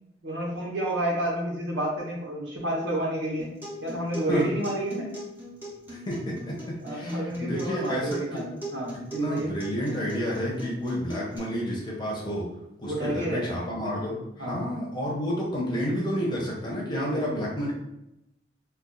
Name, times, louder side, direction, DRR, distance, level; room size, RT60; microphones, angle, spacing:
voice 1, 0.2-3.5 3.8-5.1 6.8-9.5 12.8-13.6 14.4-14.7 16.8-17.4, right 1 dB, 90° right, -3 dB, 0.9 m, -30 dB
Acoustic guitar, 3.4-11.4, right 1 dB, 10° right, 0.7 m, -40 dB
voice 2, 5.9-8.4 9.1-12.5 12.8-17.7, equal, 25° left, -4 dB, 0.7 m, -30 dB
2.4 x 2.4 x 3.8 m, 0.85 s
head